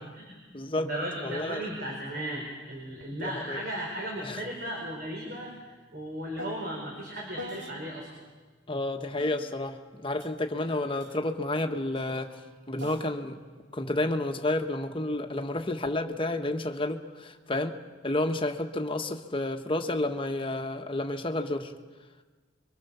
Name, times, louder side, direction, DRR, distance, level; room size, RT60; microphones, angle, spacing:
voice 1, 0.0-0.4 0.8-8.1, right 1 dB, 50° right, -1 dB, 4.8 m, -36 dB
voice 2, 0.5-0.9 1.2-1.6 3.2-3.6 4.2-4.4 8.7-12.4 12.7-13.4 13.7-17.8 18.0-21.7, left 2 dB, 25° left, 5 dB, 1.5 m, -30 dB
sound 1, 3.0-3.2 3.5-8.2 9.2-14.7 15.6-16.0, equal, 75° right, 2.2 m, -48 dB
27.5 x 23.5 x 7.1 m, 1.4 s
head